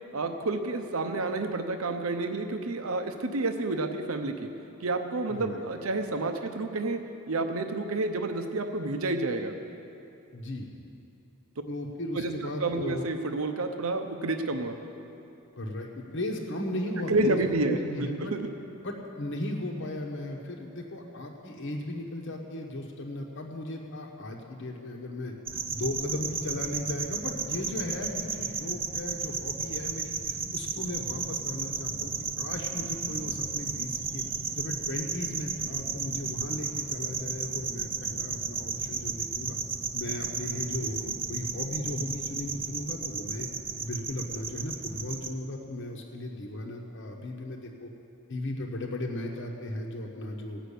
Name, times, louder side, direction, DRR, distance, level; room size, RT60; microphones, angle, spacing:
voice 1, 0.1-4.5 4.8-7.0 7.3-9.6 12.2-12.3 12.6-14.8 17.1-18.5, right 2 dB, 75° right, 6 dB, 0.8 m, -29 dB
voice 2, 5.3-5.9 10.3-10.7 11.7-13.1 15.6-18.3 18.8-25.3 25.7-34.2 34.5-39.6 39.9-43.5 43.8-47.9 48.3-50.6, left 1 dB, 60° left, 1 dB, 1.1 m, -36 dB
sound 1, 25.5-45.3, right 5 dB, 25° right, 0.6 m, -34 dB
17.0 x 6.2 x 8.3 m, 2.8 s
head